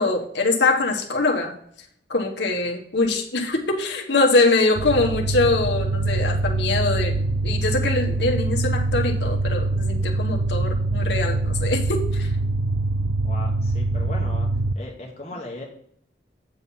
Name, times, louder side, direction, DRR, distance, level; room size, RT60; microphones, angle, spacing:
voice 1, 0.0-1.5 2.1-12.3, left 3 dB, 75° left, 1 dB, 1.2 m, -23 dB
sound 1, 4.8-14.7, right 2 dB, 85° right, 0.4 m, -24 dB
voice 2, 13.2-14.5 14.7-15.6, left 2 dB, 35° left, -1 dB, 1.1 m, -37 dB
8.8 x 4.3 x 5.5 m, 0.67 s
head